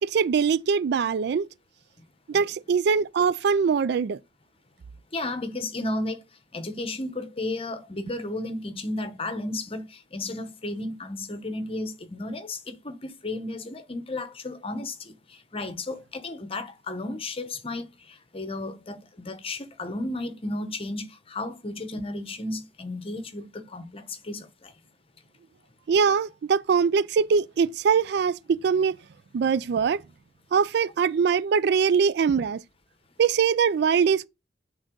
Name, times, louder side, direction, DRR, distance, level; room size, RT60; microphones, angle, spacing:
voice 1, 0.0-1.5 2.3-4.2 25.9-29.0 29.3-30.0 30.5-32.6 33.2-34.3, right 6 dB, 60° right, 0.3 m, -22 dB
voice 2, 5.1-6.2 6.5-9.8 10.1-15.1 15.5-17.8 18.3-24.7, left 2 dB, 30° left, 1.0 m, -33 dB
8.7 x 3.8 x 3.8 m
head